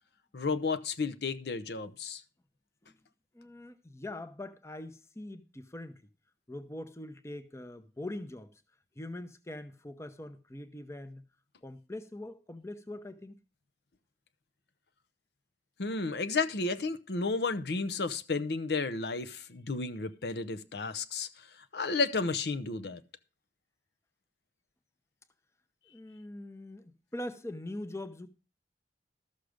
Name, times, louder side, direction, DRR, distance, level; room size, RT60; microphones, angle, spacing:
voice 1, 0.3-2.2 15.8-23.0, left 4 dB, 65° left, 0.7 m, -32 dB
voice 2, 3.3-6.0 6.5-8.5 9.0-11.2 11.6-13.4 25.9-28.3, left 1 dB, 15° left, 0.8 m, -42 dB
13.0 x 6.5 x 5.0 m
head